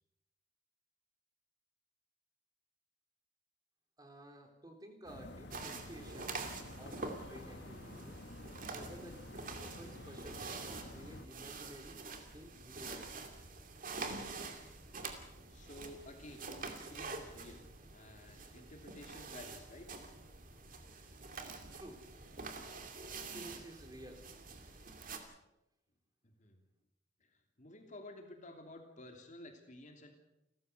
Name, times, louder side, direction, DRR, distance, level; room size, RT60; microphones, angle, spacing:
voice 1, 4.0-6.4 6.8-8.2 8.6-9.2 9.5-13.1 21.8-22.0 23.3-24.2, equal, 20° right, 5 dB, 3.4 m, -53 dB
sound 1, 5.1-11.3, left 1 dB, 65° left, 1.8 m, -50 dB
sound 2, 5.5-25.2, right 3 dB, 45° right, 2.6 m, -46 dB
voice 2, 15.5-17.6 17.9-19.9 26.2-26.6 27.6-30.1, left 1 dB, 40° left, 4 dB, 3.0 m, -53 dB
29.5 x 14.0 x 6.7 m, 0.90 s
head